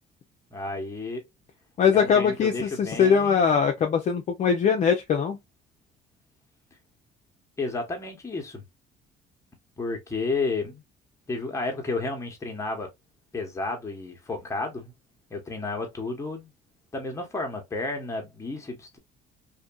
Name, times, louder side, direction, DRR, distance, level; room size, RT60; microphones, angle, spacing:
voice 1, 0.5-1.2 1.9-3.6 7.6-8.6 9.8-10.8 11.3-12.9 13.3-14.9 15.3-16.5 16.9-19.0, left 3 dB, 15° left, 1.0 m, -32 dB
voice 2, 1.8-5.4, left 7 dB, 45° left, 0.5 m, -22 dB
2.6 x 2.6 x 2.2 m
cardioid pair, 110°, 17 cm